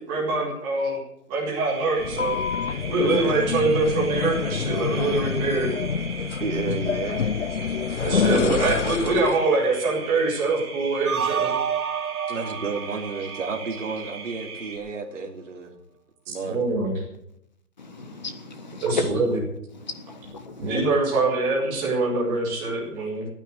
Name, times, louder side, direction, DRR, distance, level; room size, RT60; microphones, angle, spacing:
voice 1, 0.1-1.0 1.3-2.4 2.9-5.7 8.0-11.6 16.5-16.9 18.8-19.4 20.6-23.3, right 3 dB, 5° right, 1.8 m, -24 dB
sound 1, 1.5-14.8, right 5 dB, 25° right, 2.7 m, -40 dB
sound 2, 2.0-9.5, left 6 dB, 50° left, 0.6 m, -27 dB
voice 2, 3.0-3.5 6.4-7.3 8.0-8.8 12.3-15.7 16.3-16.6 20.7-20.8, right 4 dB, 55° right, 2.8 m, -32 dB
sound 3, 11.1-14.2, right 8 dB, 70° right, 1.0 m, -29 dB
voice 3, 17.8-19.1 19.8-20.8, left 2 dB, 30° left, 1.3 m, -34 dB
16.0 x 9.5 x 7.9 m
hypercardioid pair, 175°, 46 cm